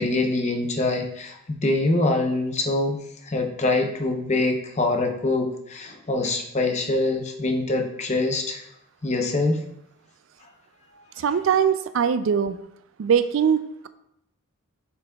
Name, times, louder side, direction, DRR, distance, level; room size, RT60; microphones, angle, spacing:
voice 1, 0.0-3.0 3.2-8.6 9.0-9.6, left 2 dB, 35° left, 3 dB, 0.7 m, -24 dB
voice 2, 11.2-12.6 13.0-13.9, right 7 dB, 65° right, 12 dB, 0.3 m, -21 dB
7.4 x 5.8 x 2.3 m, 0.78 s
head